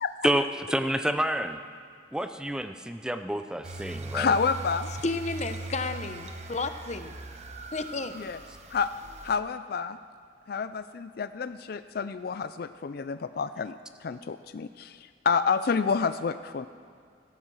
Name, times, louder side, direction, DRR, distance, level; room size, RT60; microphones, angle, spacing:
voice 1, 0.2-1.6 2.1-4.3, right 1 dB, 5° right, 8 dB, 0.5 m, -28 dB
sound 1, 3.6-9.4, right 2 dB, 35° right, 1.0 m, -40 dB
voice 2, 4.1-4.9 8.1-8.4 8.7-8.9 9.2-10.0 10.5-13.7 14.0-15.0 15.2-16.7, left 5 dB, 55° left, 12 dB, 0.4 m, -29 dB
voice 3, 5.0-7.1 7.7-8.2, left 3 dB, 40° left, 9 dB, 0.8 m, -32 dB
16.5 x 13.5 x 6.3 m, 2.2 s
head